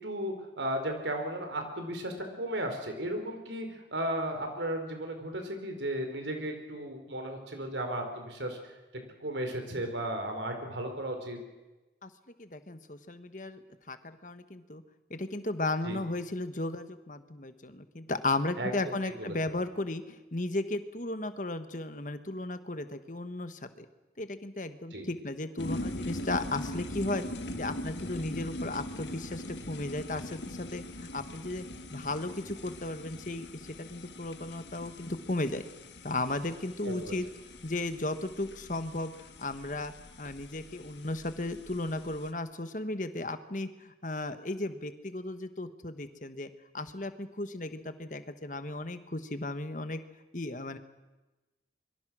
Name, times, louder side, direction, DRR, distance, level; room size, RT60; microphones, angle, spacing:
voice 1, 0.0-8.6 9.2-11.4 15.8-16.0 18.6-19.3 24.9-25.1 36.8-37.1, right 1 dB, 90° right, 5 dB, 4.7 m, -35 dB
voice 2, 12.4-13.6 13.9-14.8 15.1-23.9 24.2-27.2 27.6-35.6 36.0-37.3 37.6-46.5 46.7-50.0 50.3-50.8, left 2 dB, 45° left, 10 dB, 1.4 m, -35 dB
sound 1, 25.6-42.3, left 1 dB, 80° left, 1.8 m, -42 dB
25.0 x 23.0 x 6.3 m, 1.1 s
head